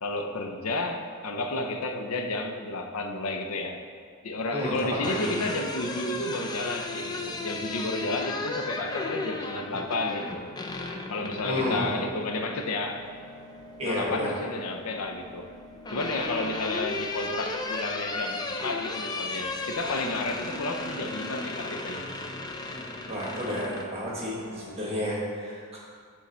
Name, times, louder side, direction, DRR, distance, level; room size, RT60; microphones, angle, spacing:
voice 1, 0.0-3.8 4.2-10.5 11.1-13.0 13.8-15.5 15.9-22.1, left 2 dB, 75° left, 5 dB, 0.6 m, -32 dB
voice 2, 4.5-5.4 11.4-11.9 13.8-14.3 23.1-25.8, left 1 dB, 30° right, -5 dB, 1.4 m, -31 dB
sound 1, 5.0-12.0 13.5-14.1 15.4-23.9, left 2 dB, 20° left, 0.4 m, -35 dB
sound 2, 5.3-24.7, left 1 dB, 90° left, 1.4 m, -49 dB
8.3 x 3.8 x 4.2 m, 2.1 s
head